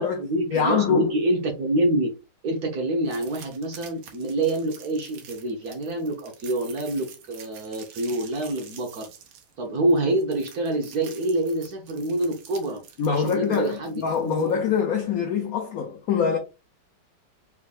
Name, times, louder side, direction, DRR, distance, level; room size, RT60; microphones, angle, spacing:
voice 1, 0.0-2.1 2.4-9.1 9.6-12.8 13.1-14.6, right 1 dB, 55° right, 1.2 m, -26 dB
voice 2, 0.5-1.1 13.0-16.4, left 6 dB, 80° left, 0.7 m, -24 dB
sound 1, 3.0-14.8, right 8 dB, 85° right, 1.9 m, -47 dB
4.8 x 4.3 x 2.4 m
omnidirectional pair, 2.4 m